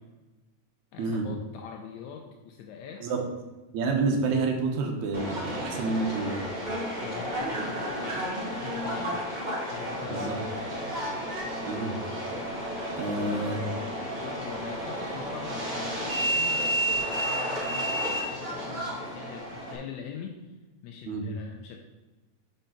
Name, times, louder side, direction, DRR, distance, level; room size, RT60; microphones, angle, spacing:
voice 1, 0.9-3.1 7.0-9.3 9.7-10.5 13.2-13.6 14.2-20.5 20.8-21.8, left 7 dB, 80° left, 2 dB, 1.9 m, -43 dB
voice 2, 3.7-6.5 10.1-10.3 11.7-12.0 12.9-13.6 21.1-21.3, right 3 dB, 75° right, 3 dB, 2.3 m, -29 dB
Subway metro underground, 5.1-19.8, equal, 50° right, 0.5 m, -32 dB
5.5 x 5.2 x 5.7 m, 1.2 s
omnidirectional pair, 3.3 m